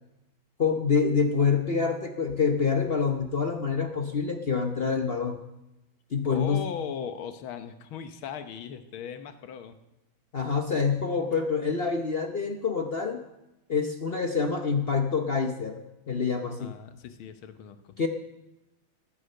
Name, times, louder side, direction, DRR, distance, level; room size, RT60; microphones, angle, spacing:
voice 1, 0.6-5.4 6.1-6.7 10.3-13.2 13.7-15.8 16.1-16.8 18.0-18.1, left 5 dB, 50° left, 5 dB, 0.7 m, -26 dB
voice 2, 6.3-9.8 16.4-18.0, left 8 dB, 85° left, 10 dB, 1.8 m, -38 dB
15.0 x 10.0 x 6.6 m, 0.95 s
omnidirectional pair, 2.2 m